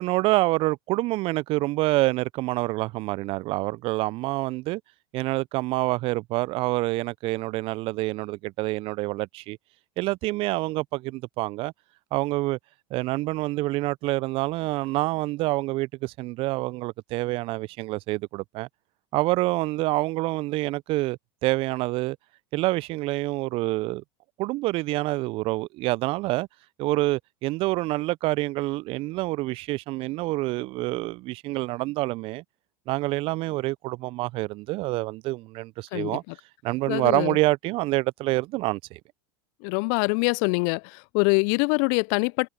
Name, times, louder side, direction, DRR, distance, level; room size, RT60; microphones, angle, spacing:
voice 1, 0.0-4.8 5.1-9.6 10.0-11.7 12.1-12.6 12.9-18.7 19.1-22.2 22.5-24.0 24.4-26.5 26.8-32.4 32.9-36.2 36.6-39.0, right 20 dB, 45° right, 0.6 m, -27 dB
voice 2, 35.9-36.3 36.9-37.4 39.6-42.5, left 36 dB, 55° left, 0.6 m, -24 dB
hypercardioid pair, 85°, 13 cm